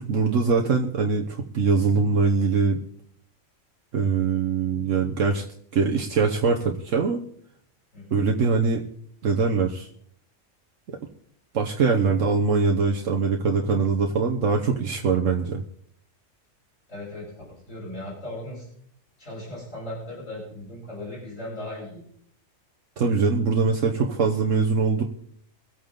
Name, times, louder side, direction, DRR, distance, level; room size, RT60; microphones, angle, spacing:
voice 1, 0.0-2.8 3.9-5.4 5.7-7.2 8.1-8.8 9.2-9.9 11.5-15.6 23.0-25.0, right 4 dB, 75° right, 2 dB, 1.3 m, -22 dB
voice 2, 7.9-8.2 16.9-18.7 19.2-22.0, left 1 dB, 70° left, -6 dB, 7.0 m, -37 dB
23.5 x 8.7 x 3.8 m, 0.65 s
omnidirectional pair, 1.3 m